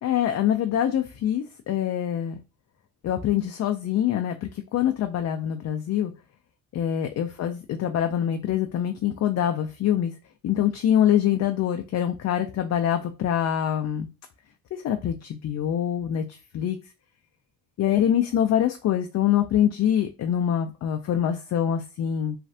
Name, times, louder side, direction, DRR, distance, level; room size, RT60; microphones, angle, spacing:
voice 1, 0.0-2.4 3.0-6.1 6.7-10.1 10.4-14.1 14.7-16.8 17.8-22.4, left 10 dB, 45° left, 6 dB, 0.4 m, -24 dB
3.2 x 2.4 x 2.6 m, 0.30 s
hypercardioid pair, 55°, 38 cm